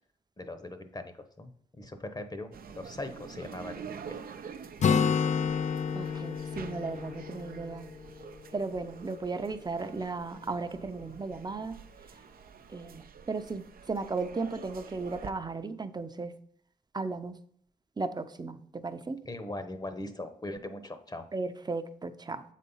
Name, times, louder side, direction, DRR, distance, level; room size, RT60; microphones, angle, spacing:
voice 1, 0.4-4.3 4.9-5.2 19.3-21.3, left 1 dB, 25° left, 9 dB, 0.9 m, -40 dB
sound 1, 2.5-15.3, right 6 dB, 75° right, 0.6 m, -47 dB
Acoustic guitar, 4.8-8.5, left 6 dB, 50° left, 0.4 m, -30 dB
voice 2, 5.9-7.9 8.5-11.8 12.7-16.3 16.9-17.4 18.0-19.2 21.3-22.4, right 3 dB, 25° right, 10 dB, 0.6 m, -35 dB
7.5 x 4.2 x 5.5 m, 0.63 s
cardioid pair, 70°, 15 cm